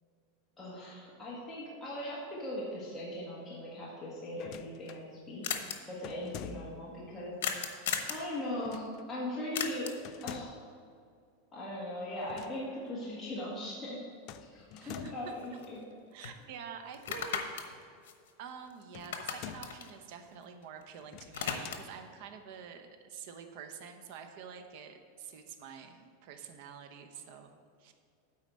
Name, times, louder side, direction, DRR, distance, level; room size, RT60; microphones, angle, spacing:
voice 1, 0.6-5.5 5.9-7.4 8.1-9.9 10.2-10.5 11.5-14.0 14.4-15.8, left 1 dB, 10° left, -8 dB, 1.7 m, -39 dB
sound 1, 4.3-5.1 6.0-6.9 8.6-9.0 10.0-10.7 12.2-12.6 12.9-13.0 14.3-15.4 17.0-17.8 18.9-19.9 21.0-21.9, left 10 dB, 40° left, 0.3 m, -47 dB
sound 2, 4.8-4.9 5.0-5.1 5.4-5.8 7.4-8.2 9.5-10.1 14.3-14.4 14.8-15.9 16.2-16.4 16.9-18.7 19.0-20.8 21.1-22.0, left 7 dB, 90° left, 1.0 m, -37 dB
voice 2, 14.8-15.3 16.1-18.0 18.4-27.9, right 7 dB, 50° right, 6 dB, 0.9 m, -48 dB
8.5 x 4.9 x 7.6 m, 2.3 s
supercardioid pair, 165°, 0 cm